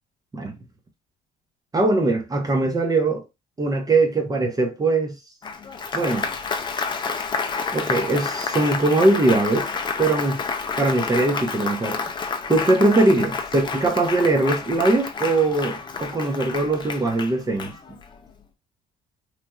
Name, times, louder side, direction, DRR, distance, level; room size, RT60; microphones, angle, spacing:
voice 1, 1.7-3.2 3.6-5.1 5.9-6.3 7.7-9.7 10.0-10.4 10.8-12.0 12.5-17.7, right 2 dB, 20° right, 0.8 m, -21 dB
Applause, 5.4-18.2, left 5 dB, 25° left, 0.5 m, -29 dB
3.1 x 2.5 x 2.2 m
cardioid pair, 110°, 17 cm